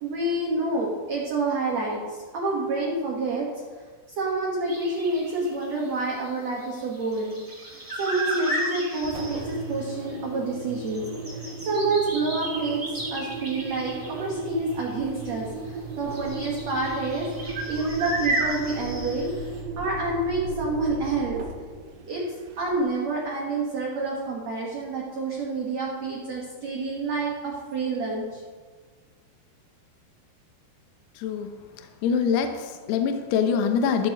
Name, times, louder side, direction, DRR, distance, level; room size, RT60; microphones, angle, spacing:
voice 1, 0.0-3.5 4.1-7.4 8.0-11.0 11.3-17.3 17.7-19.3 19.8-21.4 22.1-22.2 22.6-28.4, right 3 dB, 60° right, -3 dB, 1.8 m, -28 dB
sound 1, 4.7-9.8 10.1-10.2 10.6-15.3 15.9-19.6, right 1 dB, 5° right, 1.7 m, -34 dB
Engine, 9.0-23.0, right 2 dB, 80° right, 3.5 m, -36 dB
voice 2, 32.0-34.1, left 6 dB, 75° left, 6 dB, 2.8 m, -24 dB
13.5 x 13.0 x 3.0 m, 1.5 s
omnidirectional pair, 5.1 m